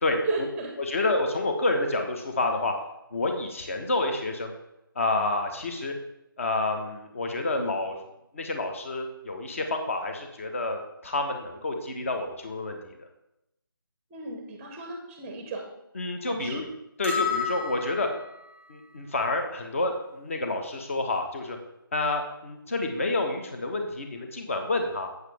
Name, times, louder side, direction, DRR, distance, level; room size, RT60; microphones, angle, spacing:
voice 1, 0.2-1.0 14.1-15.7 16.3-16.6, right 3 dB, 10° right, 3 dB, 0.8 m, -34 dB
voice 2, 0.8-2.7 3.1-4.5 4.9-5.9 6.4-8.0 8.3-13.1 15.9-16.6 17.0-18.1 18.7-21.6 21.9-25.1, left 2 dB, 35° left, 4 dB, 1.2 m, -29 dB
sound 1, 17.0-18.4, left 5 dB, 10° left, 1.5 m, -30 dB
8.0 x 7.9 x 3.5 m, 0.85 s
figure-of-eight pair, 155°, 12 cm